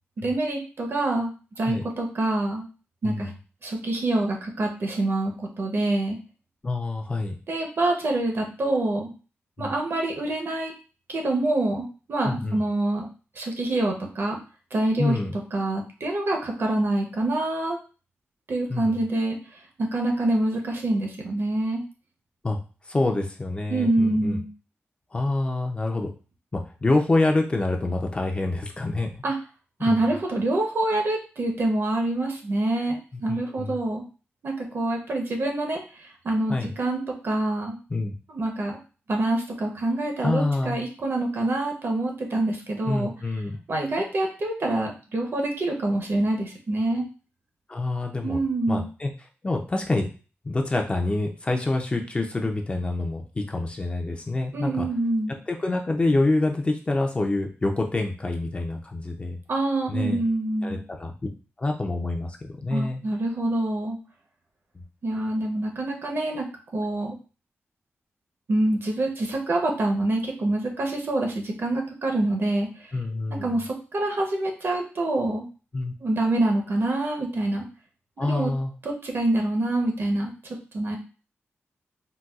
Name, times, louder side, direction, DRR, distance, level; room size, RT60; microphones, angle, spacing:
voice 1, 0.2-2.7 3.0-3.3 3.6-6.2 7.5-9.1 9.6-10.7 11.1-13.1 13.4-14.4 14.7-15.2 15.5-17.8 18.5-19.4 19.8-21.8 23.7-24.5 29.2-29.4 29.8-34.0 34.4-37.8 38.3-38.8 39.1-43.1 43.7-47.1 48.2-48.9 54.5-55.3 59.5-60.8 62.7-64.0 65.0-66.5 66.7-67.2 68.5-72.7 73.3-75.5 76.0-77.7 78.2-78.5 78.8-80.3 80.7-81.0, right 2 dB, 55° right, 1 dB, 0.7 m, -26 dB
voice 2, 3.0-3.3 6.6-7.4 9.6-9.7 12.2-12.6 15.0-15.4 18.7-19.0 22.4-22.6 22.9-24.4 25.1-26.1 26.5-29.2 29.9-30.1 33.3-33.8 36.5-36.7 37.9-38.1 40.2-40.8 42.9-43.6 47.7-48.4 48.7-49.1 49.4-50.1 50.4-54.9 55.5-59.4 59.9-60.2 60.6-61.1 61.6-63.0 64.7-64.8 72.9-73.6 75.7-75.9 78.2-78.7, left 2 dB, 25° left, 2 dB, 0.4 m, -26 dB
3.9 x 2.2 x 2.3 m, 0.35 s
wide cardioid pair, 150°, 5 cm